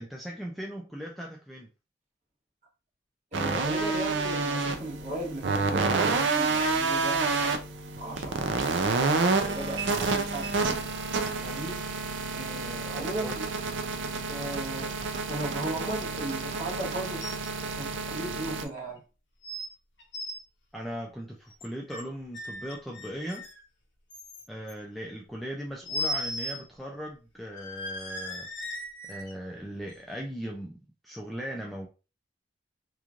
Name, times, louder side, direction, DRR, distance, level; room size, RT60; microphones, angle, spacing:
voice 1, 0.0-1.7 13.0-13.4 20.7-23.5 24.5-28.5 29.1-30.7 31.0-31.9, equal, ahead, -2 dB, 0.3 m, -38 dB
voice 2, 3.3-7.6 8.0-10.8 11.4-11.8 12.3-13.4 14.3-14.9 15.3-17.3 17.6-19.0, right 1 dB, 40° right, -3 dB, 1.1 m, -37 dB
sound 1, 3.3-18.6, right 4 dB, 75° right, 0.4 m, -29 dB
sound 2, 17.2-17.5 17.8-17.9 18.6-18.7 19.4-19.7 20.0-20.4 21.5-22.0 22.3-23.6 24.1-24.7 25.8-26.6 26.9-27.0 27.5-29.3 29.9-30.0, left 1 dB, 75° left, 0.7 m, -36 dB
3.0 x 2.4 x 2.4 m, 0.32 s
head